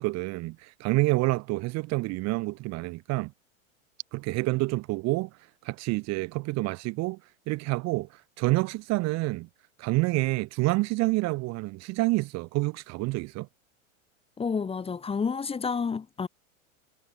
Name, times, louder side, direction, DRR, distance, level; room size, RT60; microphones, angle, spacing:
voice 1, 0.0-3.3 4.1-5.3 5.6-7.2 7.5-8.1 8.4-9.5 9.8-13.5, right 22 dB, 40° right, 1.1 m, -28 dB
voice 2, 14.4-16.3, left 5 dB, 15° left, 1.2 m, -30 dB
hypercardioid pair, 105°, 41 cm